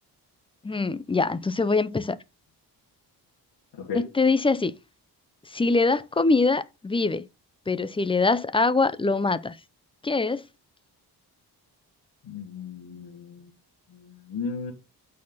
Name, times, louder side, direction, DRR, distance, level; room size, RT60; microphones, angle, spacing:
voice 1, 0.6-2.2 3.9-4.7 5.5-7.3 7.7-9.6 10.0-10.4, left 3 dB, 15° left, 0.4 m, -23 dB
voice 2, 3.7-4.1 12.2-13.5 14.0-14.7, left 5 dB, 80° left, 1.8 m, -35 dB
8.6 x 4.2 x 5.4 m
wide cardioid pair, 150°, 40 cm